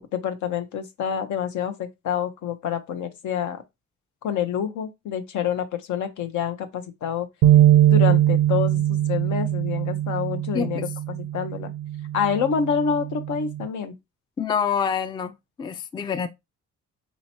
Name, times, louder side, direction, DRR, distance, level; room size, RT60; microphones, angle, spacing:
voice 1, 0.0-3.6 4.2-7.3 7.9-10.9 11.3-11.7 12.1-13.9, left 8 dB, 75° left, 0.9 m, -27 dB
sound 1, 7.4-13.7, right 12 dB, 85° right, 0.5 m, -21 dB
voice 2, 10.5-10.9 14.4-16.3, left 7 dB, 15° left, 0.3 m, -27 dB
4.3 x 2.9 x 2.8 m
cardioid pair, 90°, 30 cm